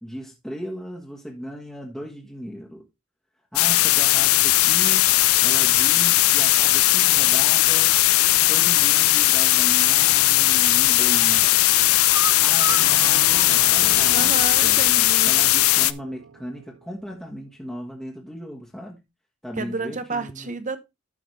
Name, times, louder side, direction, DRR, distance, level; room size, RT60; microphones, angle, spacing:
voice 1, 0.0-2.9 3.5-5.1 5.4-8.0 8.5-11.6 12.4-14.8 15.2-19.0 19.4-20.5, equal, 5° left, 1.5 m, -36 dB
sound 1, 3.6-15.9, left 16 dB, 85° left, 0.5 m, -18 dB
sound 2, 10.3-10.6 11.0-14.4 14.7-14.8 15.2-15.3, right 4 dB, 15° right, 0.4 m, -36 dB
Bell, 12.7-17.3, right 6 dB, 65° right, 0.5 m, -38 dB
voice 2, 14.1-15.3 19.6-20.8, right 3 dB, 35° right, 0.9 m, -30 dB
12.5 x 5.7 x 3.3 m
head